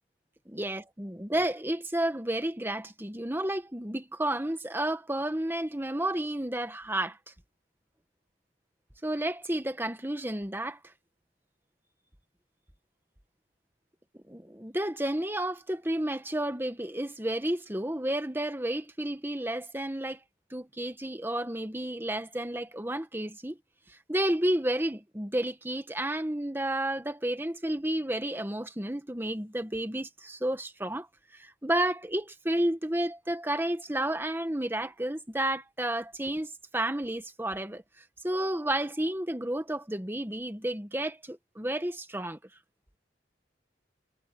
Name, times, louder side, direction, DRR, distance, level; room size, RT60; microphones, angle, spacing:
voice 1, 0.5-7.3 9.0-10.8 14.1-20.2 20.5-23.6 23.9-31.1 31.3-37.8 38.2-42.4, right 1 dB, 10° right, 1.5 m, -31 dB
head